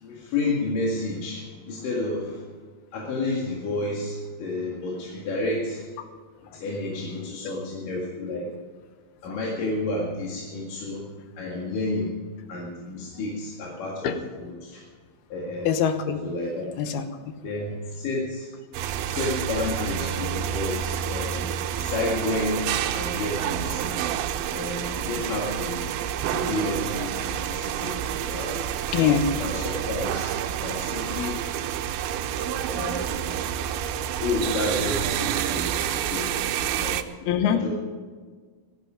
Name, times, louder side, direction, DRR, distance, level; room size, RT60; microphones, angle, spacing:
voice 1, 0.0-2.4 2.9-5.8 6.5-8.5 9.2-11.1 11.4-12.1 12.5-14.1 14.4-14.8 15.3-15.7 16.2-16.7 17.4-18.5 19.1-22.6 22.9-24.0 24.5-25.8 26.3-28.6 29.4-30.3 30.6-31.4 32.7-33.3 34.2-36.3 36.6-37.0 37.4-37.7, left 2 dB, 65° left, -3 dB, 3.5 m, -30 dB
voice 2, 15.7-16.2 16.7-17.1 28.9-29.3 37.3-37.6, left 8 dB, 85° left, 7 dB, 3.1 m, -23 dB
sound 1, 18.7-37.0, right 10 dB, 90° right, 2.5 m, -29 dB
17.0 x 13.5 x 5.1 m, 1.5 s
omnidirectional pair, 4.3 m